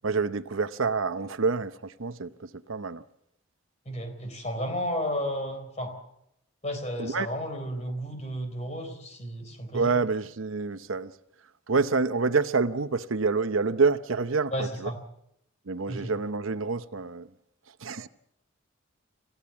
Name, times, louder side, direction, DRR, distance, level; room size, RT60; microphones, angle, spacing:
voice 1, 0.0-3.0 7.0-7.3 9.7-11.1 11.7-14.9 15.7-17.3 17.8-18.1, right 4 dB, 85° right, 0.8 m, -27 dB
voice 2, 3.9-5.9 6.6-10.0 14.5-15.0 15.9-16.2, equal, 35° left, 3.8 m, -33 dB
26.5 x 15.5 x 7.2 m
head